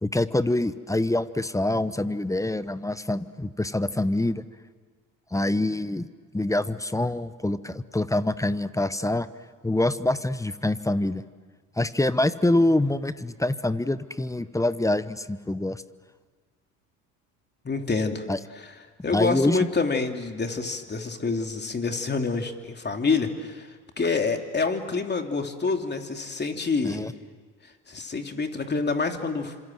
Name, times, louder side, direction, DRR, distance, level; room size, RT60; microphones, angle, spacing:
voice 1, 0.0-4.4 5.3-6.1 6.3-9.3 9.6-11.2 11.8-15.8 18.3-18.4 19.1-19.6 26.8-27.1, left 1 dB, 5° left, 15 dB, 1.0 m, -25 dB
voice 2, 17.6-18.2 18.5-18.7 19.0-27.0 27.9-29.5, left 4 dB, 25° left, 5 dB, 3.0 m, -27 dB
28.5 x 26.0 x 7.7 m, 1.5 s
hypercardioid pair, 70°, 42 cm